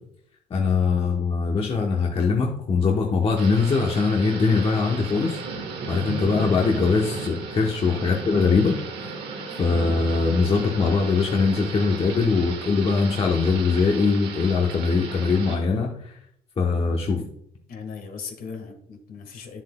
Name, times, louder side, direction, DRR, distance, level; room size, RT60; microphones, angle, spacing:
voice 1, 0.5-5.4 5.9-8.7 9.6-16.2 16.6-17.2, left 4 dB, 35° left, 0 dB, 1.0 m, -22 dB
Thunder / Rain, 3.4-15.5, right 4 dB, 75° right, 1.6 m, -35 dB
voice 2, 17.7-19.6, left 5 dB, 60° left, 5 dB, 1.6 m, -38 dB
9.9 x 7.3 x 2.3 m, 0.69 s
cardioid pair, 110°, 17 cm